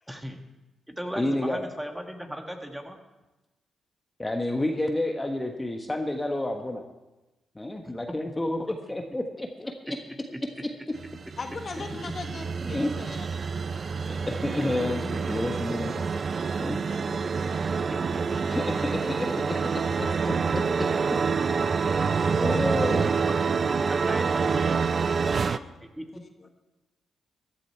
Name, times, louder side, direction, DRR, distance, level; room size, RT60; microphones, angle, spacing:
voice 1, 0.1-0.4 0.9-3.0 10.3-10.4 19.3-19.4 23.0-23.3 23.9-24.8 26.0-26.1, equal, 5° right, 4 dB, 1.8 m, -37 dB
voice 2, 1.1-1.6 4.2-6.8 7.5-10.0 12.7-12.9 14.0-16.0 16.6-16.8 18.5-19.0 20.0-20.9 22.3-23.1, left 1 dB, 20° left, 3 dB, 1.3 m, -29 dB
sound 1, 11.0-25.6, right 5 dB, 50° right, 0.5 m, -27 dB
voice 3, 11.4-13.3 13.5-13.8 16.8-19.4 25.3-25.7 26.1-26.5, left 4 dB, 50° left, 6 dB, 1.3 m, -42 dB
14.0 x 11.5 x 4.5 m, 1.1 s
supercardioid pair, 55°, 0 cm